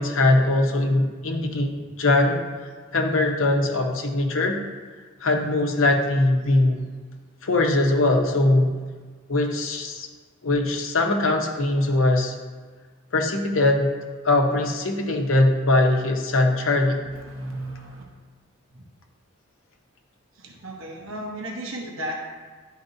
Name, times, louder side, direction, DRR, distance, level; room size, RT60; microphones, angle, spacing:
voice 1, 0.0-2.4 2.9-4.6 5.2-6.8 7.4-8.7 9.3-10.1 10.4-12.4 13.1-13.9 14.2-17.0 21.8-21.9, left 2 dB, 70° left, 2 dB, 0.8 m, -21 dB
voice 2, 17.1-18.0 20.4-22.4, right 1 dB, 75° right, 0 dB, 0.9 m, -34 dB
11.0 x 4.7 x 2.7 m, 1.5 s
head